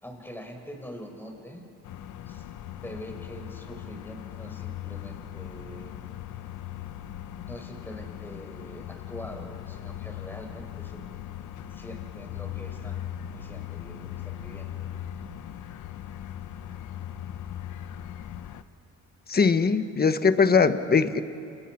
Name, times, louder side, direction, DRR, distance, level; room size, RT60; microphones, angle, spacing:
voice 1, 0.0-1.6 2.3-2.5 2.8-5.9 7.4-11.2 11.7-14.9, equal, 5° left, 3 dB, 5.2 m, -44 dB
sound 1, 1.8-18.6, left 11 dB, 80° left, 1.1 m, -39 dB
voice 2, 19.3-21.2, left 5 dB, 30° left, 10 dB, 1.4 m, -21 dB
30.0 x 29.5 x 6.1 m, 2.6 s
cardioid pair, 90°, 30 cm